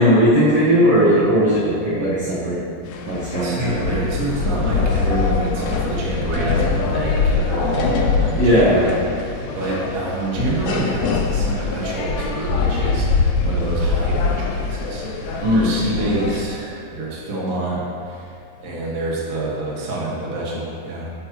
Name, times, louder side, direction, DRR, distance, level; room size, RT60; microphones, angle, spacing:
voice 1, 0.0-2.6 3.1-4.1 8.4-8.9 15.4-15.7, equal, 65° right, -7 dB, 1.5 m, -17 dB
sound 1, 2.9-16.4, left 4 dB, 85° left, 1.5 m, -23 dB
voice 2, 3.4-21.1, right 2 dB, 40° right, -5 dB, 1.1 m, -27 dB
10.5 x 7.8 x 3.0 m, 2.5 s
omnidirectional pair, 4.0 m